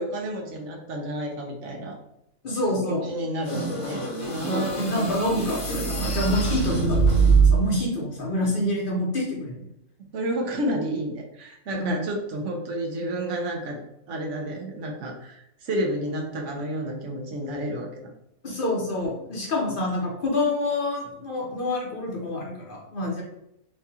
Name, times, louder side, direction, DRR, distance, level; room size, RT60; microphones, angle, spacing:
voice 1, 0.0-2.0 2.8-5.2 10.0-13.8 14.1-17.9, right 1 dB, 60° right, 2 dB, 0.9 m, -31 dB
voice 2, 2.4-3.1 4.5-7.0 7.2-9.6 11.7-12.0 18.4-23.2, left 1 dB, 40° left, -2 dB, 0.9 m, -27 dB
sound 1, 3.4-7.8, right 4 dB, 55° left, 1.4 m, -23 dB
4.6 x 2.3 x 2.8 m, 0.80 s
omnidirectional pair, 1.6 m